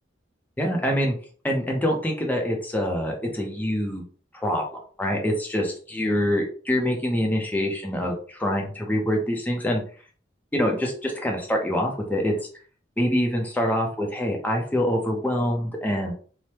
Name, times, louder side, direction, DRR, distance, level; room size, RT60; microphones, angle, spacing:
voice 1, 0.6-1.1 1.4-4.0 4.3-9.8 10.5-12.3 13.0-16.1, equal, 10° left, 1 dB, 0.5 m, -25 dB
3.2 x 2.1 x 2.8 m, 0.42 s
head